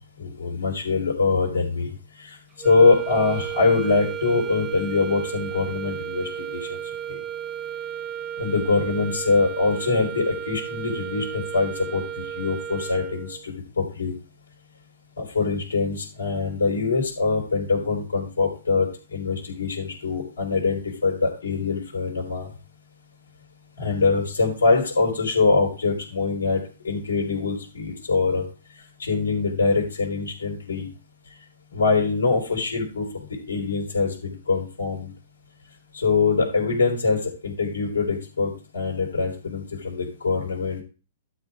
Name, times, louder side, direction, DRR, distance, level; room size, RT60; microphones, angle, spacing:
voice 1, 0.2-2.4 2.6-6.8 7.1-7.2 8.4-14.1 15.2-22.5 23.8-28.4 29.0-30.9 31.7-33.0 33.5-35.1 35.9-40.8, left 4 dB, 80° left, -1 dB, 4.1 m, -23 dB
sound 1, 2.6-13.5, right 10 dB, 20° right, 1.0 m, -33 dB
12.0 x 4.1 x 4.9 m, 0.34 s
figure-of-eight pair, 115°, 0 cm